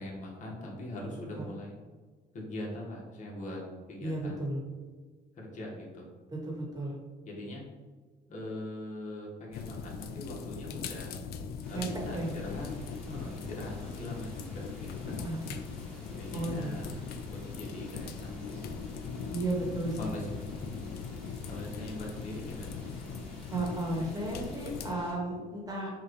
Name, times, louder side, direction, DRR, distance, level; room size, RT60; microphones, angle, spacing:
voice 1, 0.0-1.8 2.3-3.6 3.9-4.4 5.3-6.1 7.2-7.6 8.3-11.2 11.7-12.7 13.1-15.2 16.0-16.9 17.3-18.8 20.0-20.2 20.5-20.6 21.5-22.9, left 1 dB, 45° left, -2 dB, 1.3 m, -41 dB
voice 2, 4.0-4.6 6.3-6.9 11.7-11.9 12.1-12.3 15.2-15.6 16.3-17.0 19.3-20.0 23.5-25.9, right 2 dB, 20° right, -2 dB, 1.3 m, -34 dB
sound 1, 9.5-24.9, left 5 dB, 65° left, 0.4 m, -40 dB
sound 2, 11.6-25.1, equal, 5° left, 1.4 m, -51 dB
5.7 x 2.5 x 3.1 m, 1.4 s
cardioid pair, 110°, 17 cm